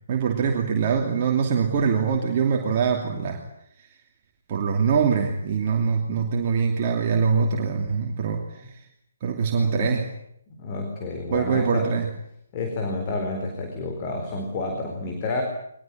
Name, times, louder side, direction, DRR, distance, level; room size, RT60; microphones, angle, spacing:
voice 1, 0.1-3.4 3.8-3.9 4.5-8.8 9.2-10.0 11.3-12.1, right 6 dB, 35° right, 1 dB, 2.8 m, -23 dB
voice 2, 9.6-10.0 10.5-11.9 12.5-15.4, left 3 dB, 25° left, 4 dB, 4.4 m, -30 dB
23.0 x 20.5 x 8.7 m, 0.74 s
figure-of-eight pair, 140°, 0 cm